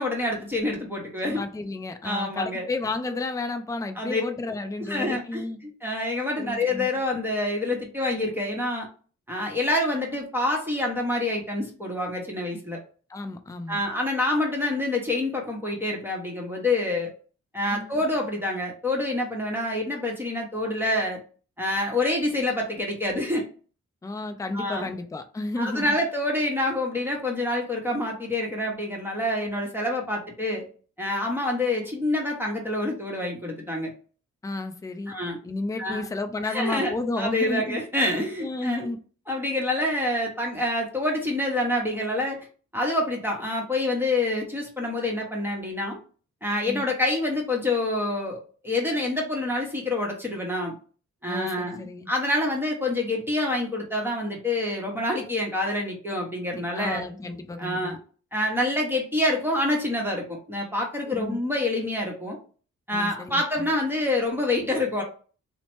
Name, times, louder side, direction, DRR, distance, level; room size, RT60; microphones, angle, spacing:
voice 1, 0.0-1.4 2.0-2.7 4.0-4.2 4.8-8.9 9.3-12.8 13.7-17.1 17.5-21.2 21.6-23.5 24.5-24.9 25.6-30.6 31.0-33.9 35.1-35.4 35.8-36.1 36.4-38.9 39.3-42.4 42.7-46.0 46.4-50.8 51.2-57.0 57.6-58.0 58.3-62.4 62.9-65.0, left 1 dB, 5° right, 1.0 m, -27 dB
voice 2, 1.2-5.6 6.4-6.9 13.1-13.8 17.7-18.0 24.0-25.8 34.4-35.1 35.4-37.8 38.4-39.0 46.7-46.8 51.3-52.1 56.6-58.0 61.1-61.4 62.9-63.7, left 2 dB, 10° left, 0.4 m, -32 dB
2.8 x 2.1 x 3.1 m
supercardioid pair, 45°, 32 cm